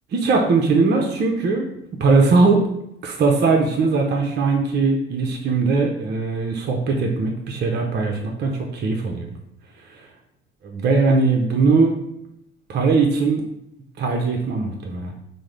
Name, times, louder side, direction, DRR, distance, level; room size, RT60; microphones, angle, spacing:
voice 1, 0.1-1.7 2.0-2.6 3.0-9.3 10.6-12.0 12.7-13.4 14.0-15.1, right 4 dB, 35° right, 1 dB, 0.5 m, -20 dB
3.6 x 2.1 x 3.2 m, 0.80 s
figure-of-eight pair, 50°, 30 cm